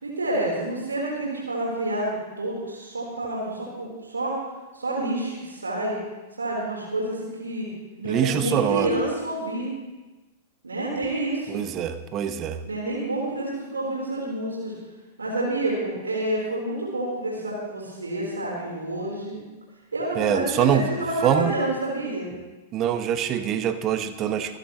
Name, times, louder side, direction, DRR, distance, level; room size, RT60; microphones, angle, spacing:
voice 1, 0.0-4.4 4.7-5.9 6.4-7.7 8.0-9.7 10.6-11.7 12.6-14.7 15.2-19.4 19.9-22.3, right 1 dB, 75° right, -4 dB, 3.9 m, -28 dB
voice 2, 8.0-9.0 11.5-12.6 20.2-20.9 21.2-21.5 22.7-24.6, right 9 dB, 30° right, 10 dB, 0.9 m, -24 dB
25.0 x 10.5 x 3.1 m, 1.2 s
figure-of-eight pair, 95°, 0 cm